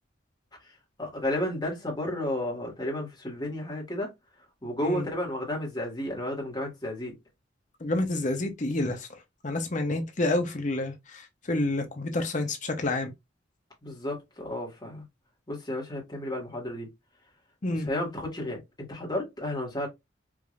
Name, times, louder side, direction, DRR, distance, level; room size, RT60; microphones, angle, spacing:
voice 1, 1.0-4.1 4.6-7.2 13.8-15.0 15.5-16.9 17.7-19.9, left 1 dB, 20° left, 1.5 m, -32 dB
voice 2, 7.8-9.1 9.4-13.1 17.6-17.9, left 2 dB, 40° left, 0.7 m, -29 dB
4.7 x 2.6 x 2.4 m
head